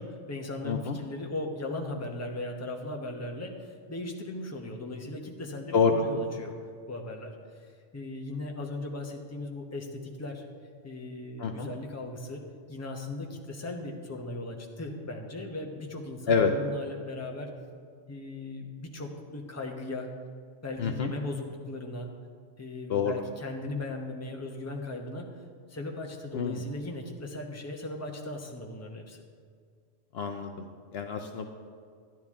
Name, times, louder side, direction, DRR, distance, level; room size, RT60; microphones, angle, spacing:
voice 1, 0.0-6.5 6.9-7.3 7.6-10.4 10.8-12.4 12.7-17.5 18.1-20.1 20.6-22.1 22.6-25.3 25.7-29.2, left 2 dB, 15° left, 1 dB, 0.8 m, -38 dB
voice 2, 0.6-1.0 5.7-5.9 11.4-11.7 16.3-16.5 20.8-21.1 22.9-23.1 26.3-26.6 30.1-31.5, left 6 dB, 65° left, 5 dB, 0.8 m, -27 dB
11.5 x 10.5 x 3.6 m, 2.1 s
omnidirectional pair, 1.2 m